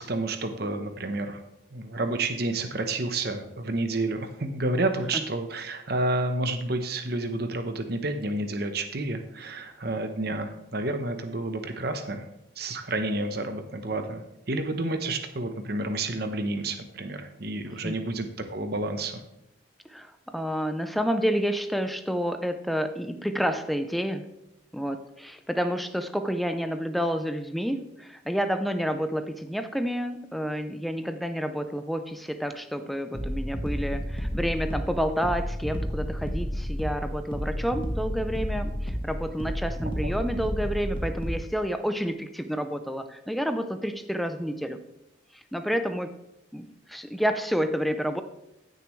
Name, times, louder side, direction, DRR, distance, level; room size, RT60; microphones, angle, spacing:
voice 1, 0.0-1.4 1.7-12.3 12.6-19.2 40.0-40.1, right 2 dB, 50° right, 7 dB, 0.9 m, -30 dB
voice 2, 19.9-24.2 24.7-44.8 45.3-46.1 46.5-48.2, equal, ahead, 8 dB, 0.5 m, -29 dB
sound 1, 33.1-41.5, equal, 25° left, 1.3 m, -31 dB
15.0 x 6.8 x 3.2 m, 0.92 s
head